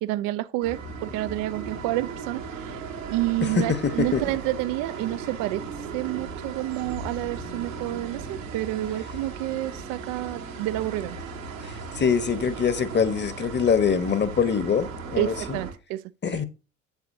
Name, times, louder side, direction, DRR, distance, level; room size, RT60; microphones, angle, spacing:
voice 1, 0.0-2.8 3.1-11.2 15.2-16.0, right 16 dB, 55° right, 0.6 m, -29 dB
sound 1, 0.6-15.7, right 5 dB, 85° right, 1.7 m, -37 dB
voice 2, 3.5-4.2 12.0-15.6 16.2-16.5, left 6 dB, 25° left, 1.2 m, -24 dB
8.2 x 7.7 x 2.7 m
figure-of-eight pair, 55°, 39 cm